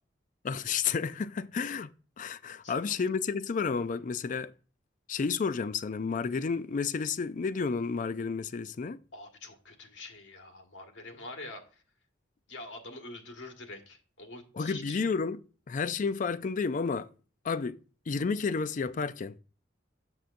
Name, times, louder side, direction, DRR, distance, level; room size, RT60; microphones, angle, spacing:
voice 1, 0.4-1.9 2.2-4.5 5.1-9.0 14.6-15.4 15.7-17.1 17.4-17.8 18.1-19.3, left 5 dB, 45° left, 0.4 m, -31 dB
voice 2, 9.1-11.6 12.5-15.0, left 2 dB, 90° left, 1.7 m, -45 dB
7.7 x 6.9 x 2.6 m
head